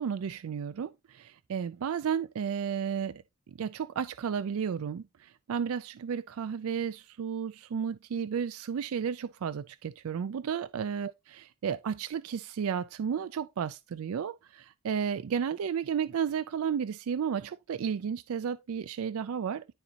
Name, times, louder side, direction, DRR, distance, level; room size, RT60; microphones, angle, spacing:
voice 1, 0.0-11.1 11.6-19.7, right 7 dB, 70° right, 0.4 m, -33 dB
11.5 x 4.1 x 2.8 m
head